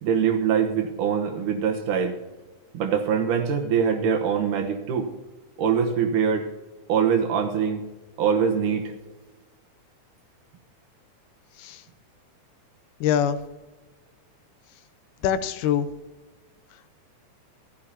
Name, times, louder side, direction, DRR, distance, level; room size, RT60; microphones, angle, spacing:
voice 1, 0.0-2.2 2.7-5.1 5.6-6.5 6.9-7.8 8.2-8.9, right 7 dB, 90° right, 3 dB, 2.8 m, -23 dB
voice 2, 13.0-13.4 15.2-15.9, left 9 dB, 85° left, 12 dB, 2.1 m, -23 dB
15.0 x 13.0 x 2.9 m, 1.2 s
omnidirectional pair, 3.6 m